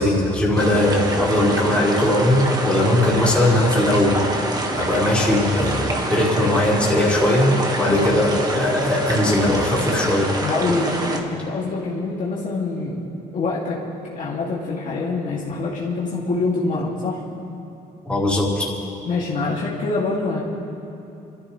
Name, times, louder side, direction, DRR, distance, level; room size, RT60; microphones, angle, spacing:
voice 1, 0.0-4.2 4.7-10.3 18.0-18.7, left 1 dB, 5° left, -7 dB, 4.2 m, -19 dB
sound 1, 0.6-11.2, right 1 dB, 25° right, 1.7 m, -26 dB
voice 2, 10.4-13.0 13.3-13.8 14.1-17.2 19.0-20.4, left 3 dB, 50° left, -5 dB, 2.5 m, -25 dB
27.5 x 14.0 x 3.3 m, 3.0 s
cardioid pair, 110°, 17 cm